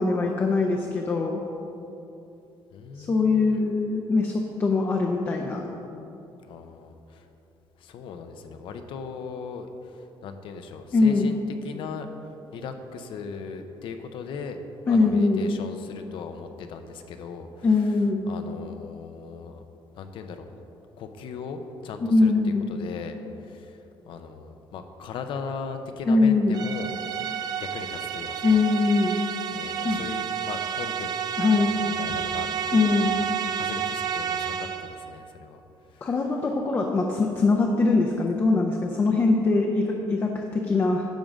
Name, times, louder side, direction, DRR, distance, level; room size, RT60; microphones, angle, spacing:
voice 1, 0.0-1.4 3.0-5.7 10.9-11.3 14.9-15.4 17.6-18.2 22.1-22.7 26.1-26.6 28.4-29.1 29.8-30.0 31.4-31.7 32.7-33.1 36.0-41.0, left 3 dB, 25° left, 1 dB, 0.6 m, -22 dB
voice 2, 2.7-3.6 6.4-7.3 7.8-12.1 12.5-14.6 14.9-18.0 18.3-19.6 19.9-20.5 21.0-27.0 27.5-28.6 29.5-31.1 31.6-35.6 35.9-36.1, left 5 dB, 70° left, 7 dB, 0.7 m, -38 dB
sound 1, 26.5-35.0, right 8 dB, 45° right, 0.6 m, -30 dB
10.5 x 3.8 x 7.3 m, 2.9 s
cardioid pair, 160°, 9 cm